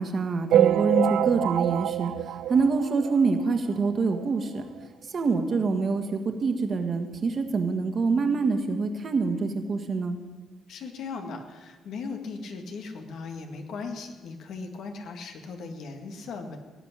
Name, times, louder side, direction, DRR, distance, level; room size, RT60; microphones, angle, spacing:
voice 1, 0.0-4.6 5.1-10.2, right 4 dB, 45° right, 6 dB, 1.7 m, -26 dB
sound 1, 0.5-3.4 3.8-3.9 4.1-4.3 4.6-4.7 5.5-5.6 6.1-6.2, right 12 dB, 80° right, 0.4 m, -25 dB
voice 2, 10.7-16.6, left 4 dB, 75° left, 5 dB, 2.1 m, -38 dB
18.0 x 6.0 x 9.9 m, 1.3 s
cardioid pair, 90°, 0 cm